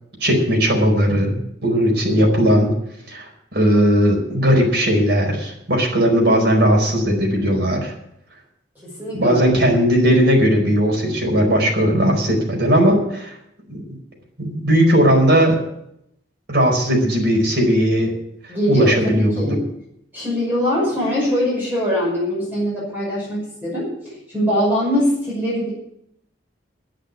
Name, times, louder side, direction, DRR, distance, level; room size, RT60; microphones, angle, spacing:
voice 1, 0.2-2.7 3.1-7.9 9.1-13.3 13.7-13.9 14.4-15.6 16.5-18.1 18.7-19.3, equal, 65° right, 0 dB, 4.8 m, -17 dB
voice 2, 8.8-9.5 18.5-19.6 20.1-25.7, equal, 10° right, -6 dB, 5.9 m, -22 dB
10.0 x 9.9 x 9.6 m, 0.76 s
head